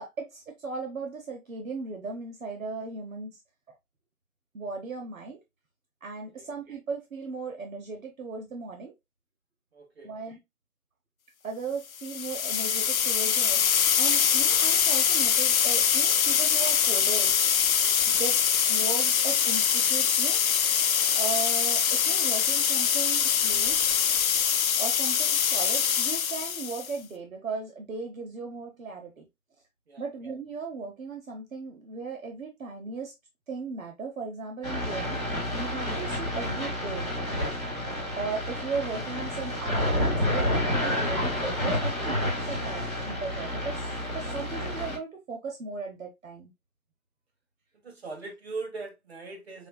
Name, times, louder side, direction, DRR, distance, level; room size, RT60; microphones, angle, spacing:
voice 1, 0.0-3.3 3.7-3.8 4.5-5.4 6.0-8.9 10.0-10.4 11.4-13.6 14.0-17.4 18.1-20.4 21.1-23.9 24.8-29.3 30.0-33.1 33.5-35.2 35.6-37.1 38.1-46.5, right 4 dB, 65° right, 1.1 m, -37 dB
voice 2, 9.7-10.1 29.9-30.0 47.8-49.7, right 3 dB, 45° right, 1.5 m, -39 dB
sound 1, 12.0-26.9, left 8 dB, 70° left, 0.6 m, -24 dB
sound 2, 34.6-45.0, left 1 dB, 15° right, 1.8 m, -29 dB
5.5 x 2.8 x 2.3 m
hypercardioid pair, 180°, 43 cm